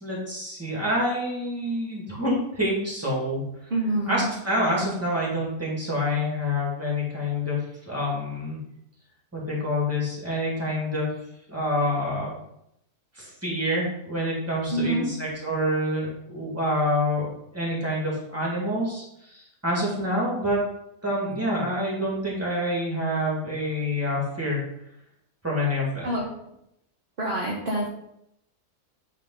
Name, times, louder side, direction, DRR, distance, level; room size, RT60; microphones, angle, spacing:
voice 1, 0.0-3.4 4.1-8.6 9.3-11.2 11.5-12.4 13.2-17.3 17.5-20.6 21.0-24.6 25.4-26.1, left 1 dB, 10° right, -4 dB, 2.0 m, -27 dB
voice 2, 3.7-4.3 14.7-15.1 26.0-26.3 27.2-27.9, right 1 dB, 40° right, -3 dB, 1.2 m, -26 dB
9.0 x 3.6 x 3.9 m, 0.80 s
omnidirectional pair, 1.7 m